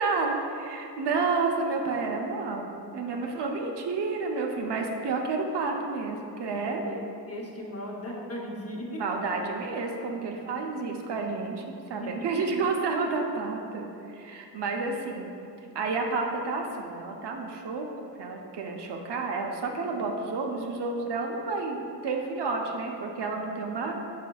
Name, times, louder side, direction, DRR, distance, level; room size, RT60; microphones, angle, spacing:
voice 1, 0.0-6.8 9.0-11.6 11.9-15.3 15.7-17.9 18.2-23.9, right 4 dB, 75° right, 1 dB, 0.6 m, -30 dB
voice 2, 7.3-9.0 12.0-12.1, left 1 dB, 35° left, -2 dB, 0.7 m, -37 dB
5.7 x 4.1 x 2.3 m, 2.6 s
cardioid pair, 80°, 41 cm